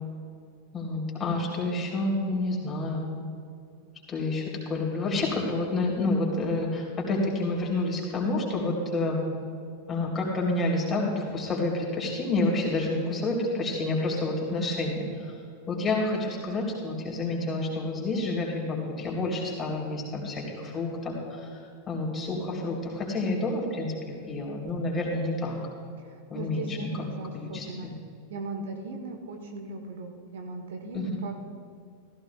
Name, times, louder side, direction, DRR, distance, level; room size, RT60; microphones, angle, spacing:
voice 1, 0.7-3.0 4.1-9.2 9.9-15.1 15.7-21.5 21.9-23.9 24.3-25.6 26.3-26.9 27.3-27.9 30.9-31.1, left 2 dB, 20° left, -2 dB, 3.4 m, -29 dB
voice 2, 26.0-27.9 28.3-31.4, right 3 dB, 60° right, 4 dB, 1.1 m, -38 dB
16.0 x 15.0 x 2.4 m, 2.3 s
figure-of-eight pair, 90°, 0 cm